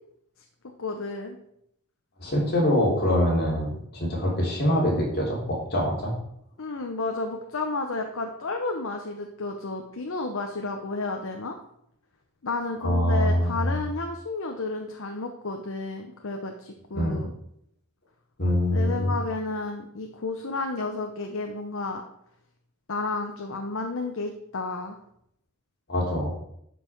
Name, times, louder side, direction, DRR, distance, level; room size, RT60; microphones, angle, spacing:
voice 1, 0.8-1.4 6.6-11.5 12.4-17.3 18.7-22.0 22.9-25.0, left 3 dB, 65° left, 4 dB, 0.9 m, -32 dB
voice 2, 2.2-6.1 12.8-13.8 16.9-17.2 18.4-19.1 25.9-26.3, equal, 50° left, -3 dB, 3.6 m, -24 dB
11.5 x 5.5 x 4.6 m, 0.73 s
head